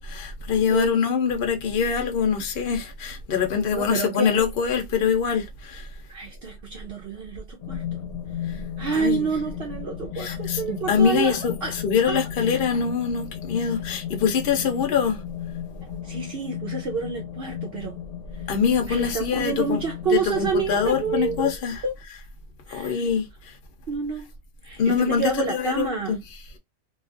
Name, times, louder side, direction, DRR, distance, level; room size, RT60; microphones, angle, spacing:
voice 1, 0.0-5.9 8.9-9.3 10.2-15.2 18.5-19.8 20.1-21.8 22.7-23.5 24.8-26.2, left 6 dB, 55° left, 0.8 m, -24 dB
voice 2, 3.7-4.3 6.1-8.0 8.8-11.7 12.0-12.2 14.5-14.6 16.0-18.0 18.9-21.5 21.8-21.9 22.7-22.9 23.9-24.3 24.6-26.2, right 5 dB, 60° right, 0.8 m, -28 dB
sound 1, 7.6-21.6, left 9 dB, 80° left, 1.2 m, -35 dB
2.8 x 2.4 x 2.4 m
omnidirectional pair, 1.2 m